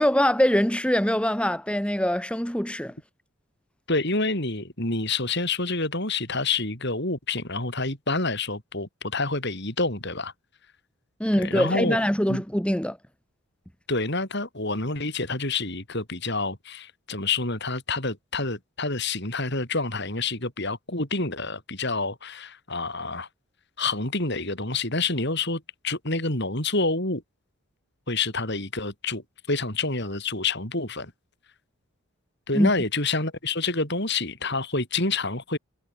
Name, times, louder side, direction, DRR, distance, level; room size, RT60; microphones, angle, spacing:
voice 1, 0.0-2.9 11.2-13.0 32.5-32.7, equal, 5° left, 2.5 m, -23 dB
voice 2, 3.9-10.3 11.3-12.0 12.3-12.4 13.9-23.3 23.8-27.2 28.1-31.1 32.5-35.6, left 3 dB, 50° left, 6.1 m, -28 dB
head